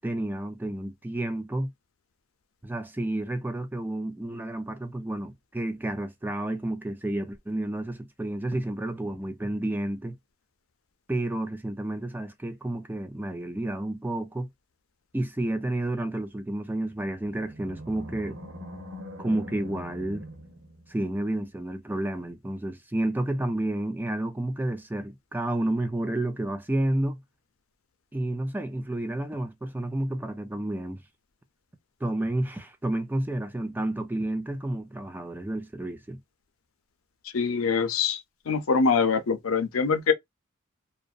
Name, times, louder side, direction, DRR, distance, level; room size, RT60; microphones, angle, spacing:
voice 1, 0.0-1.7 2.6-10.2 11.1-14.5 15.1-18.4 19.2-20.2 20.9-27.2 28.1-31.0 32.0-36.2, right 1 dB, 10° right, 0.4 m, -30 dB
Animal, 16.9-21.3, left 1 dB, 65° right, 1.1 m, -43 dB
voice 2, 37.3-38.2 38.5-40.1, left 5 dB, 85° left, 0.6 m, -24 dB
2.6 x 2.1 x 2.4 m
head